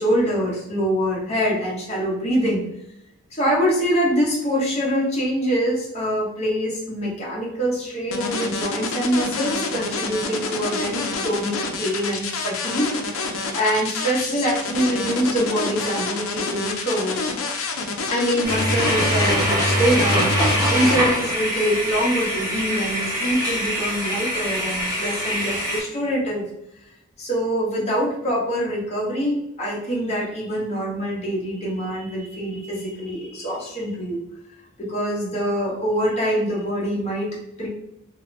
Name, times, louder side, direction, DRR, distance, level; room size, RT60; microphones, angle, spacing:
voice 1, 0.0-2.6 3.3-17.3 18.1-26.4 27.2-34.2 34.8-37.7, equal, 30° left, -4 dB, 0.9 m, -24 dB
sound 1, 8.1-21.0, left 4 dB, 75° left, 0.5 m, -27 dB
sound 2, 18.4-25.8, equal, 15° right, 1.2 m, -23 dB
2.8 x 2.5 x 3.2 m, 0.81 s
head